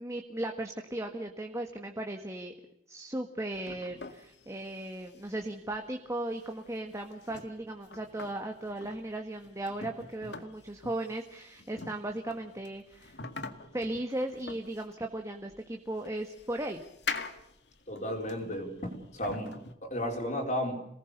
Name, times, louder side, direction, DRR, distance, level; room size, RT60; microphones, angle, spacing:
voice 1, 0.0-2.5 2.9-13.2 13.7-16.8, right 1 dB, 15° right, 4 dB, 1.7 m, -37 dB
sound 1, 3.5-19.7, left 4 dB, 75° left, 2.0 m, -45 dB
voice 2, 17.9-20.8, equal, 45° left, 1 dB, 4.5 m, -34 dB
27.5 x 19.0 x 6.8 m, 0.80 s
head